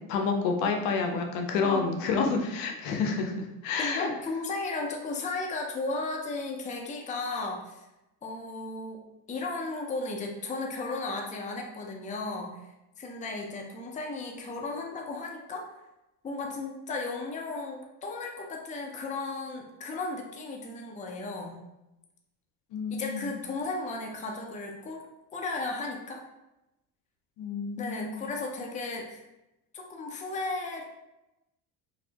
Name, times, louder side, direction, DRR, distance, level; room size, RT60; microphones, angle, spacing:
voice 1, 0.0-4.1 22.7-23.3 27.4-28.3, left 4 dB, 70° left, 3 dB, 0.7 m, -29 dB
voice 2, 1.6-2.2 3.8-7.9 8.2-9.0 9.3-12.6 13.0-15.7 16.2-21.6 22.9-25.0 25.3-26.2 27.8-29.2 29.7-30.8, left 3 dB, 15° left, 1 dB, 0.5 m, -35 dB
3.2 x 2.7 x 2.7 m, 0.94 s
supercardioid pair, 90°, 44 cm